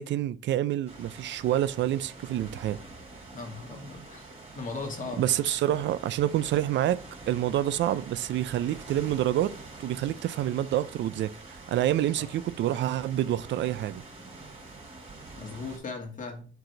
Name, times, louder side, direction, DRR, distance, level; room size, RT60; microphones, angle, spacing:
voice 1, 0.0-2.8 5.2-7.0 7.3-9.5 9.8-14.0, right 12 dB, 65° right, 0.4 m, -27 dB
sound 1, 0.9-15.8, right 3 dB, 30° right, 2.9 m, -46 dB
voice 2, 3.3-4.3 4.6-5.3 12.2-12.3 15.4-16.5, left 3 dB, 40° left, 2.0 m, -38 dB
4.7 x 3.9 x 5.6 m
cardioid pair, 90°, 20 cm